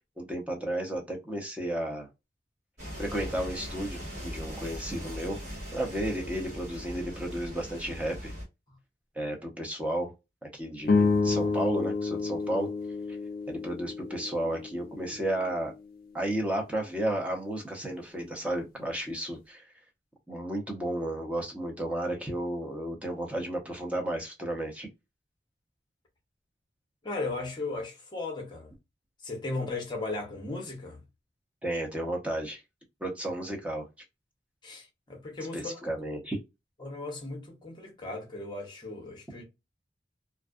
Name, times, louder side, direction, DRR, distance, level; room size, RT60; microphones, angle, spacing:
voice 1, 0.2-2.1 3.0-5.4 5.7-8.3 9.2-10.1 10.4-12.7 13.5-15.7 16.1-19.6 20.3-24.9 31.6-32.6 33.0-33.9 35.5-36.4, right 1 dB, 5° right, 0.7 m, -33 dB
sound 1, 2.8-8.4, equal, 40° right, 1.4 m, -40 dB
sound 2, 10.8-15.3, left 4 dB, 50° left, 0.3 m, -29 dB
voice 2, 27.0-28.7 29.2-31.0 34.6-35.8 36.8-39.4, left 3 dB, 25° left, 0.8 m, -36 dB
2.6 x 2.3 x 2.3 m
head